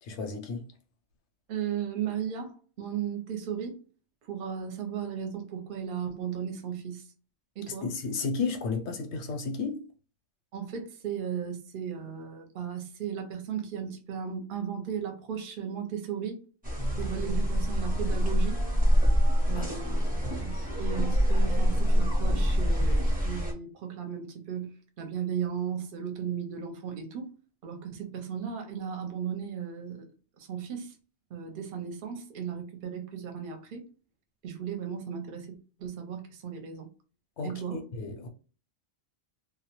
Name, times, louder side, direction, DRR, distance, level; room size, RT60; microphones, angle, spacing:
voice 1, 0.0-0.7 7.7-9.8 19.5-19.6 20.2-20.3 37.4-38.3, left 4 dB, 80° left, 0.9 m, -33 dB
voice 2, 1.5-3.8 4.2-7.1 7.6-7.9 10.5-16.4 16.9-18.6 19.5-27.3 27.6-30.1 30.4-30.9 31.3-33.9 34.4-36.9 37.4-37.8, right 8 dB, 55° right, 0.7 m, -36 dB
sound 1, 16.6-23.5, equal, 10° right, 0.7 m, -25 dB
2.2 x 2.1 x 2.8 m
omnidirectional pair, 1.1 m